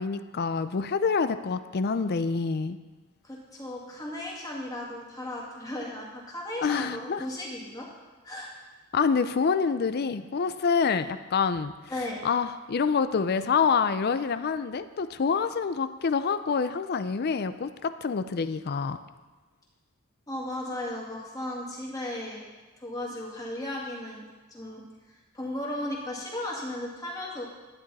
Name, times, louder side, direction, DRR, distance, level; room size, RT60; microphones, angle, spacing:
voice 1, 0.0-2.8 6.6-7.2 8.9-11.7 12.2-19.0, left 5 dB, 45° left, 12 dB, 0.4 m, -27 dB
voice 2, 3.2-7.9 8.2-8.5 11.9-12.2 20.3-22.4 22.8-24.2 24.5-24.8 25.1-27.4, left 1 dB, 15° left, -3 dB, 2.2 m, -35 dB
11.5 x 9.9 x 4.1 m, 1.3 s
head